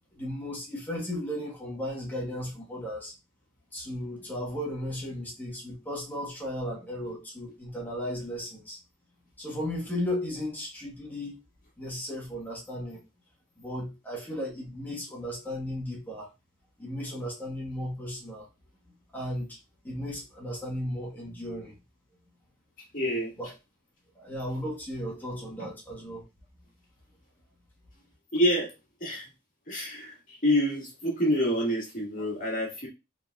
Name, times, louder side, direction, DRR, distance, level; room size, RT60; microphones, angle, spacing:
voice 1, 0.1-3.1 3.7-8.8 9.4-11.4 11.8-13.0 13.6-16.3 16.8-18.5 19.1-19.6 19.8-21.8 23.4-23.5 24.1-26.2, left 1 dB, 10° left, 1.2 m, -35 dB
voice 2, 22.9-23.3 28.3-28.7 29.0-29.3 29.7-32.9, equal, 45° left, 1.6 m, -27 dB
3.8 x 3.5 x 2.3 m
head